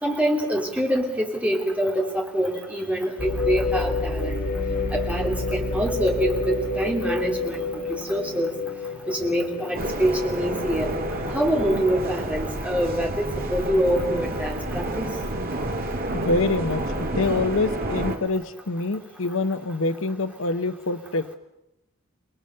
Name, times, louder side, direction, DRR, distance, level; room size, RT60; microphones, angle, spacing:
voice 1, 0.0-4.4 4.9-7.8 8.1-8.5 9.1-10.9 11.3-15.0, equal, 5° right, 0 dB, 3.1 m, -25 dB
sound 1, 3.2-13.1 13.6-13.7 14.4-14.7, left 3 dB, 50° left, 4.7 m, -29 dB
sound 2, 9.7-18.2, right 1 dB, 45° right, 2.3 m, -29 dB
voice 2, 16.1-21.3, left 3 dB, 75° left, 12 dB, 1.0 m, -26 dB
29.0 x 19.5 x 6.7 m, 0.87 s
head